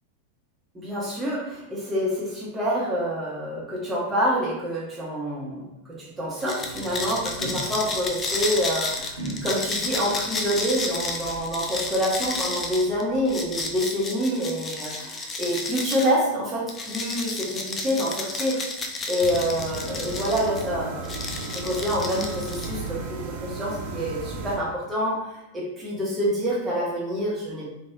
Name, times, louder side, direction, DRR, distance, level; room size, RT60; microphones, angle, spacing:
voice 1, 0.7-18.6 19.1-21.1 21.5-27.7, equal, 15° right, -5 dB, 1.1 m, -27 dB
sound 1, 6.4-16.1 16.7-20.6 21.0-22.9, left 3 dB, 20° left, 0.4 m, -32 dB
sound 2, 6.6-13.9, right 1 dB, 65° right, 1.0 m, -41 dB
sound 3, 19.2-24.6, right 3 dB, 50° right, 0.6 m, -34 dB
3.0 x 2.6 x 2.4 m, 0.91 s
figure-of-eight pair, 90°, 0 cm